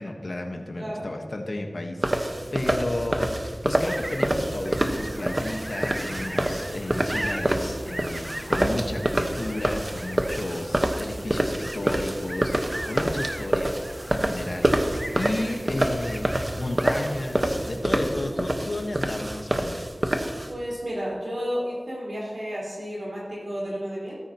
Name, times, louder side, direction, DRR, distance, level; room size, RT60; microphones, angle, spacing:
voice 1, 0.0-19.9, left 1 dB, 70° left, 3 dB, 1.2 m, -33 dB
sound 1, 2.0-20.5, right 1 dB, 40° right, 1.1 m, -27 dB
sound 2, 3.6-17.9, right 1 dB, 20° right, 0.4 m, -38 dB
voice 2, 20.5-24.2, equal, 70° right, -6 dB, 4.2 m, -32 dB
14.0 x 13.5 x 2.9 m, 1.5 s
wide cardioid pair, 55°, 0 cm